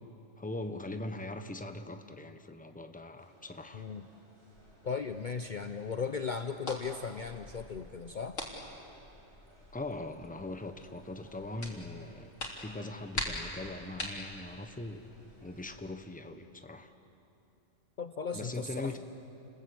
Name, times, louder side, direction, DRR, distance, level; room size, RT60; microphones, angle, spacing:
voice 1, 0.4-3.8 9.7-15.0 15.4-16.9 18.3-19.0, left 2 dB, 5° left, 7 dB, 1.1 m, -41 dB
sound 1, 3.2-15.9, right 1 dB, 50° right, 5.7 m, -63 dB
voice 2, 3.7-4.0 4.8-8.4 18.0-19.0, left 5 dB, 45° left, 8 dB, 0.8 m, -37 dB
sound 2, 4.5-15.8, left 1 dB, 90° left, 3.6 m, -44 dB
30.0 x 21.0 x 8.5 m, 2.7 s
omnidirectional pair, 1.2 m